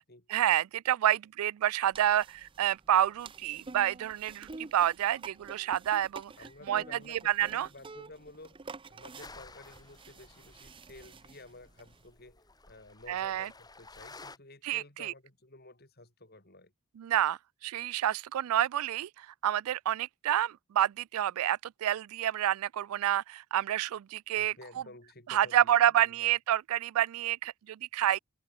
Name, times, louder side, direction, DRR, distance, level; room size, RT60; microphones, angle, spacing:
voice 1, 0.3-6.3 6.7-7.7 13.1-13.5 14.6-15.1 17.0-24.5 25.3-28.2, right 11 dB, 75° right, 0.3 m, -29 dB
sound 1, 1.9-12.1, right 3 dB, 25° right, 0.6 m, -50 dB
voice 2, 6.4-8.6 8.9-16.7 24.4-26.3, left 2 dB, 45° left, 4.9 m, -52 dB
sound 2, 9.2-14.4, left 3 dB, 15° left, 3.5 m, -53 dB
head